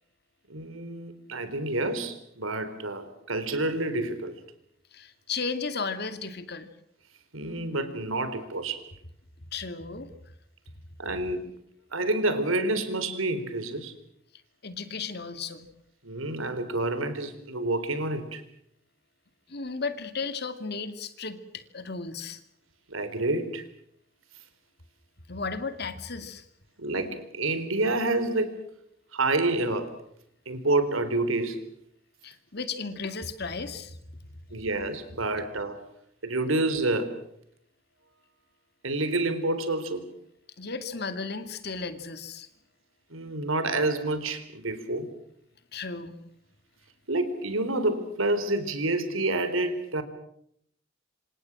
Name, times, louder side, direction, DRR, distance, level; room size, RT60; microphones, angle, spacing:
voice 1, 0.5-4.3 7.3-8.8 11.0-11.5 11.9-13.9 16.0-18.4 22.9-23.6 26.8-28.6 29.1-29.9 30.5-31.7 34.5-35.8 36.2-37.2 38.8-40.1 43.1-45.1 47.1-50.0, right 2 dB, 85° right, 11 dB, 3.9 m, -28 dB
voice 2, 4.9-6.7 9.5-10.1 14.6-15.7 19.5-22.4 25.3-26.4 32.2-34.0 40.6-42.5 45.7-46.2, left 4 dB, 50° left, 10 dB, 2.3 m, -34 dB
27.5 x 27.0 x 6.2 m, 0.70 s
head